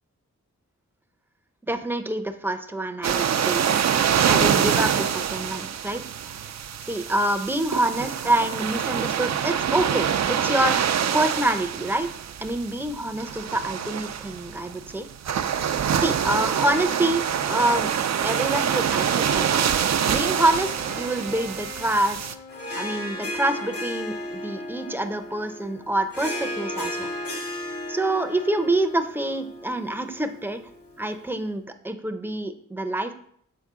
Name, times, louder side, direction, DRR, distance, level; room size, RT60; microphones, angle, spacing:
voice 1, 1.7-3.9 4.3-6.4 6.8-10.9 11.1-12.1 12.4-15.1 16.0-17.2 17.5-17.9 18.2-19.7 20.1-22.2 22.8-27.1 27.9-30.6 31.0-33.1, right 1 dB, 5° right, 7 dB, 0.6 m, -26 dB
sound 1, 3.0-22.3, right 8 dB, 65° right, 0.5 m, -25 dB
Wind instrument woodwind instrument, 19.3-23.8, left 1 dB, 65° left, 1.9 m, -42 dB
Harp, 22.5-31.1, left 1 dB, 50° left, 1.5 m, -34 dB
6.9 x 4.4 x 3.6 m, 0.66 s
cardioid pair, 60°, 29 cm